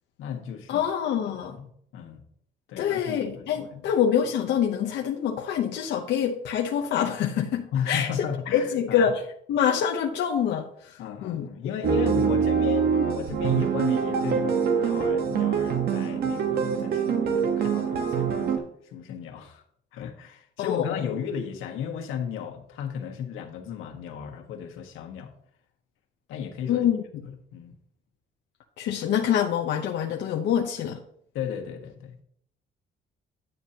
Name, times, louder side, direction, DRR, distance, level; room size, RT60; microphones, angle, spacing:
voice 1, 0.2-0.9 1.2-2.2 2.7-3.9 7.7-9.1 11.0-19.6 19.9-25.3 26.3-26.9 27.2-27.7 31.3-32.2, left 8 dB, 80° left, 2 dB, 1.4 m, -35 dB
voice 2, 0.7-1.6 2.8-8.1 8.5-9.2 9.5-11.5 11.8-12.0 20.6-21.0 26.7-27.0 28.8-31.0, left 8 dB, 60° left, 1 dB, 0.7 m, -26 dB
sound 1, 11.8-18.6, right 6 dB, 50° right, 1.2 m, -24 dB
9.3 x 8.9 x 2.8 m, 0.67 s
cardioid pair, 180°, 21 cm